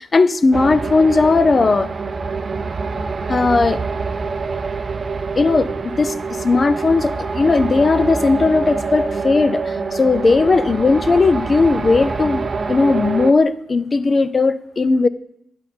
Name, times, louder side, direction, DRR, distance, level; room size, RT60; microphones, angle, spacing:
voice 1, 0.0-1.9 3.3-3.8 5.3-12.4 12.7-15.1, left 3 dB, 30° left, 15 dB, 0.3 m, -17 dB
sound 1, 0.5-13.3, right 4 dB, 35° right, 0.4 m, -25 dB
9.8 x 5.2 x 4.2 m, 0.79 s
cardioid pair, 115°, 0 cm